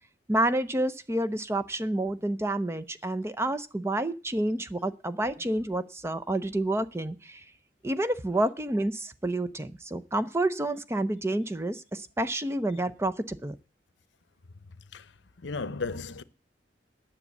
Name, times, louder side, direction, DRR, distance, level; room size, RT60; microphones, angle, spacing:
voice 1, 0.3-7.4 7.8-13.5, right 1 dB, 15° right, 0.5 m, -29 dB
voice 2, 15.4-16.2, left 4 dB, 85° left, 0.7 m, -34 dB
9.8 x 7.1 x 8.2 m
head